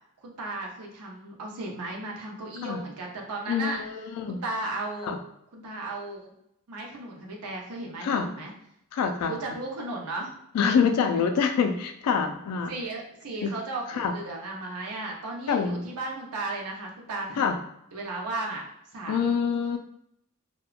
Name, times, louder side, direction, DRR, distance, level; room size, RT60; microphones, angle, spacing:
voice 1, 0.2-3.8 4.2-5.2 5.5-6.3 6.7-8.5 9.2-10.3 11.0-11.2 12.7-17.6 17.9-18.6 18.9-19.4, right 2 dB, 85° right, -1 dB, 0.6 m, -35 dB
voice 2, 3.5-4.4 5.0-5.2 8.0-8.3 8.9-9.4 10.5-12.7 13.4-13.5 13.9-14.1 15.5-15.9 17.4-17.6 19.1-19.8, left 6 dB, 85° left, 8 dB, 0.3 m, -26 dB
2.8 x 2.1 x 2.4 m, 0.77 s
head